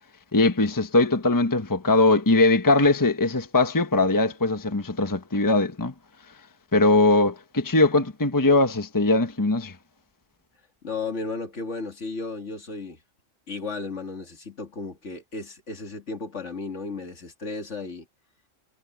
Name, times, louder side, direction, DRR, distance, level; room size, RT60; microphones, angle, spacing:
voice 1, 0.3-5.9 6.7-9.7, left 2 dB, 15° left, 1.1 m, -21 dB
voice 2, 10.8-13.0 13.5-18.1, left 3 dB, 60° left, 2.6 m, -34 dB
omnidirectional pair, 1.4 m